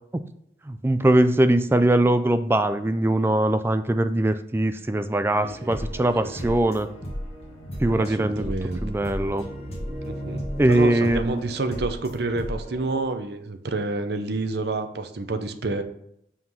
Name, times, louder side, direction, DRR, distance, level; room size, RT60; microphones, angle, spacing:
voice 1, 0.7-6.9 7.8-8.5 8.8-9.5 10.6-11.4, right 1 dB, 15° right, 10 dB, 0.3 m, -21 dB
sound 1, 5.4-13.0, equal, 35° left, 1.7 m, -34 dB
voice 2, 5.4-6.6 8.0-8.8 10.0-10.4 10.7-15.8, right 3 dB, 60° right, 8 dB, 0.7 m, -29 dB
5.7 x 4.8 x 5.5 m, 0.74 s
head